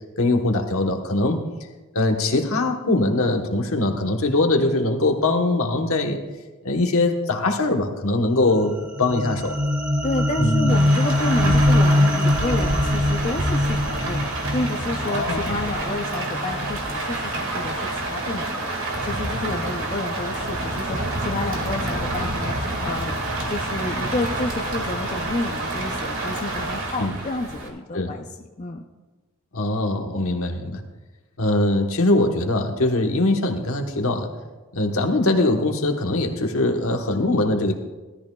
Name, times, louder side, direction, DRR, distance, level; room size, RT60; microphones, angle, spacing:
voice 1, 0.2-1.4 1.9-6.2 6.6-9.6 10.4-10.7 11.4-11.5 15.0-15.5 27.0-27.2 27.9-28.1 29.5-30.8 31.4-34.3 34.7-37.7, left 2 dB, 70° left, 4 dB, 1.2 m, -22 dB
sound 1, 8.5-17.0, left 1 dB, 35° right, 1.9 m, -23 dB
voice 2, 10.0-18.7 19.0-22.6 22.8-23.2 23.5-28.2 28.6-28.8, left 2 dB, 35° left, 3 dB, 0.5 m, -30 dB
Rain, 10.7-27.7, right 2 dB, 60° right, 2.1 m, -28 dB
16.5 x 13.0 x 2.3 m, 1.2 s
head